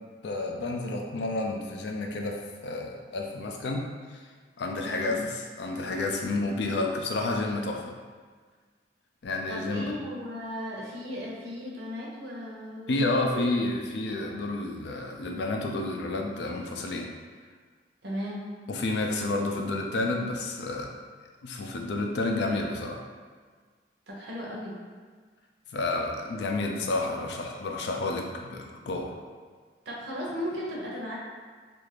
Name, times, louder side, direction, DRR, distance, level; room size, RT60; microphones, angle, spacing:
voice 1, 0.2-3.9 4.6-5.2 5.6-7.8 9.2-9.9 12.9-17.1 18.7-20.9 21.4-23.0 25.7-29.1, left 2 dB, 70° left, 2 dB, 0.4 m, -30 dB
voice 2, 4.8-5.2 9.5-13.4 18.0-18.5 24.1-24.8 29.9-31.2, equal, 75° right, -4 dB, 0.6 m, -36 dB
2.5 x 2.4 x 3.2 m, 1.5 s
head